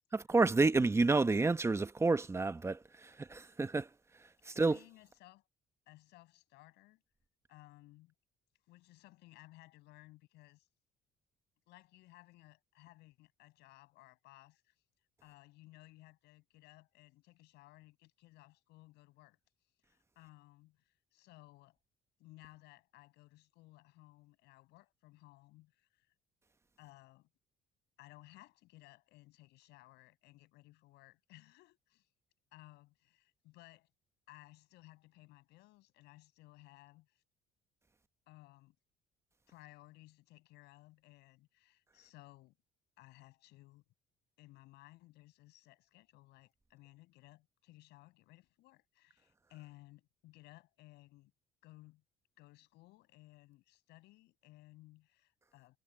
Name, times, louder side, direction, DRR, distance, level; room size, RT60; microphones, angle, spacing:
voice 1, 0.1-3.9 4.4-4.8, right 3 dB, 15° right, 1.0 m, -29 dB
voice 2, 4.5-5.4 5.9-7.0 7.5-8.1 8.7-10.7 11.7-14.8 15.2-19.4 19.8-21.8 22.2-26.1 26.8-27.3 28.0-32.1 32.5-33.9 34.3-37.2 38.3-38.8 39.5-42.6 43.0-43.8 44.4-51.3 51.6-52.0 52.4-55.8, left 19 dB, 90° left, 6.9 m, -59 dB
cardioid pair, 110°, 17 cm